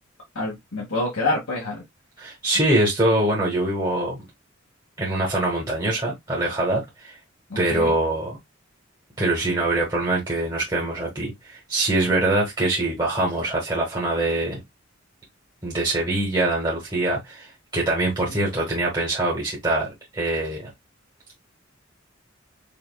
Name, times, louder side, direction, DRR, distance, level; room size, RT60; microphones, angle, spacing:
voice 1, 0.3-1.8 7.5-7.9 18.3-18.4, left 2 dB, 85° left, 1.3 m, -27 dB
voice 2, 2.2-4.2 5.0-7.1 7.5-8.4 9.2-14.6 15.6-19.9 20.1-20.7, right 2 dB, 20° right, 1.2 m, -23 dB
5.2 x 2.5 x 2.3 m
head